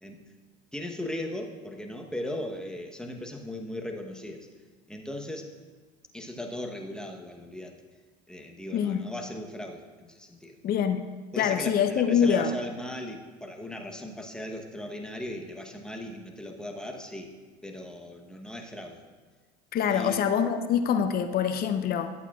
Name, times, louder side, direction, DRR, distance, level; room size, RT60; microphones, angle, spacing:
voice 1, 0.7-4.5 4.9-5.5 6.1-7.8 8.3-10.5 11.3-17.3 17.6-19.0 19.9-20.3, left 1 dB, 5° left, 2 dB, 1.0 m, -38 dB
voice 2, 10.6-11.0 11.4-12.5 19.7-22.1, left 8 dB, 45° left, 8 dB, 0.7 m, -25 dB
11.5 x 8.0 x 2.4 m, 1.4 s
supercardioid pair, 95°, 21 cm